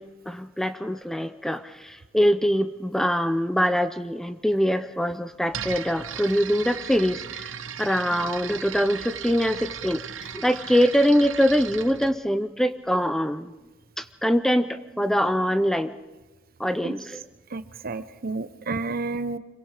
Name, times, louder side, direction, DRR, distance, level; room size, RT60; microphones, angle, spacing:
voice 1, 0.0-13.5 14.0-15.9 16.6-17.2, equal, ahead, 10 dB, 0.6 m, -24 dB
sound 1, 5.5-12.1, right 8 dB, 80° right, 1.0 m, -37 dB
voice 2, 17.5-19.4, right 3 dB, 50° right, 12 dB, 0.9 m, -31 dB
26.0 x 22.5 x 5.0 m, 1.2 s
head